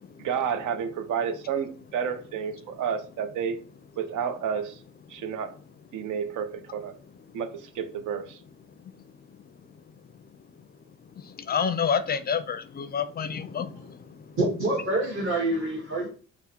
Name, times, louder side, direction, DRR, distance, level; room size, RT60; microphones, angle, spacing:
voice 1, 0.2-3.6 4.0-4.8 5.1-5.5 5.9-6.9 7.3-8.4, right 7 dB, 80° right, 0.6 m, -30 dB
voice 2, 11.5-13.7, left 7 dB, 30° left, 0.4 m, -27 dB
voice 3, 14.4-16.1, right 2 dB, 45° right, 1.4 m, -26 dB
3.6 x 2.1 x 4.2 m
cardioid pair, 90°, 30 cm